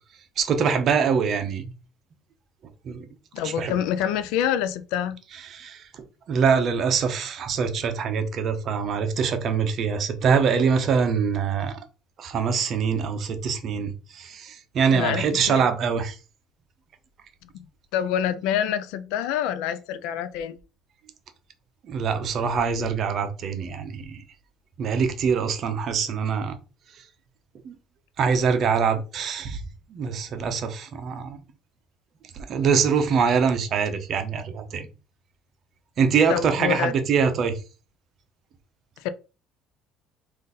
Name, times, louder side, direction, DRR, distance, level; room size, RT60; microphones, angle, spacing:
voice 1, 0.4-1.7 2.8-3.1 3.4-3.7 5.4-5.8 6.3-11.8 12.2-16.2 21.8-24.2 24.8-26.5 27.6-27.7 28.2-29.6 29.9-31.4 32.5-34.9 36.0-37.6, right 6 dB, 40° right, 0.6 m, -24 dB
voice 2, 3.3-5.2 14.9-15.6 17.4-17.5 17.9-20.6 36.3-36.9 39.0-39.1, left 9 dB, 90° left, 0.4 m, -26 dB
3.9 x 2.5 x 4.0 m
cardioid pair, 160°, 0 cm